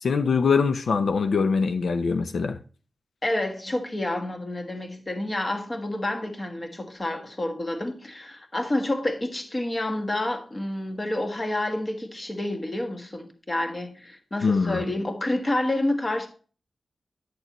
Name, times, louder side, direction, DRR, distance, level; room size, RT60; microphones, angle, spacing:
voice 1, 0.0-2.6 14.4-14.8, left 5 dB, 85° left, 0.6 m, -23 dB
voice 2, 3.2-16.3, left 1 dB, 30° left, 1.5 m, -29 dB
9.6 x 6.6 x 3.0 m
wide cardioid pair, 125°, 0 cm